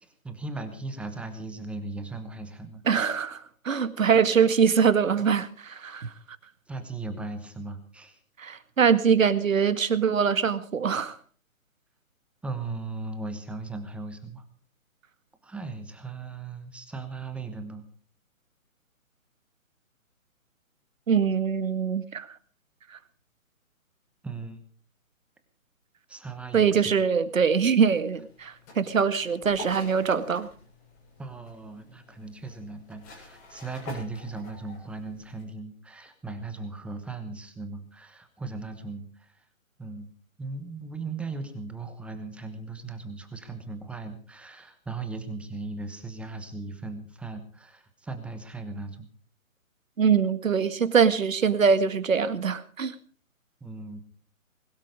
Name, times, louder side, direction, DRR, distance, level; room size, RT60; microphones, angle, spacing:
voice 1, 0.0-2.8 6.7-8.2 12.4-14.4 15.4-17.8 24.2-24.6 26.1-26.9 31.2-39.4 39.8-40.1 40.4-49.1 53.6-54.0, right 3 dB, 5° right, 8 dB, 1.1 m, -38 dB
voice 2, 2.9-6.1 8.4-11.2 21.1-22.3 26.5-30.5 50.0-52.9, right 6 dB, 65° right, 12 dB, 2.0 m, -23 dB
sound 1, 27.1-35.4, left 2 dB, 20° left, 7.5 m, -47 dB
21.5 x 12.5 x 5.0 m, 0.41 s
figure-of-eight pair, 145°, 42 cm